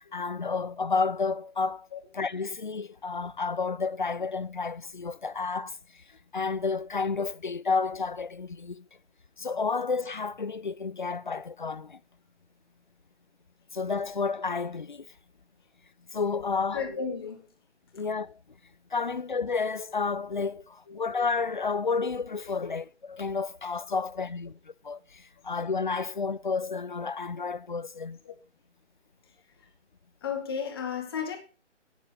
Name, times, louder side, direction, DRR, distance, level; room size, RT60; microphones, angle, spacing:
voice 1, 0.1-1.9 2.1-5.8 6.3-8.9 9.4-12.0 13.7-15.1 16.1-16.8 17.9-18.4 18.9-24.5 24.8-28.2, left 4 dB, 45° left, 0.4 m, -31 dB
voice 2, 16.7-17.5 20.9-21.0 22.6-22.7 28.2-28.3 30.2-31.4, left 6 dB, 20° left, 1.3 m, -33 dB
12.0 x 9.4 x 3.3 m
figure-of-eight pair, 155°, 36 cm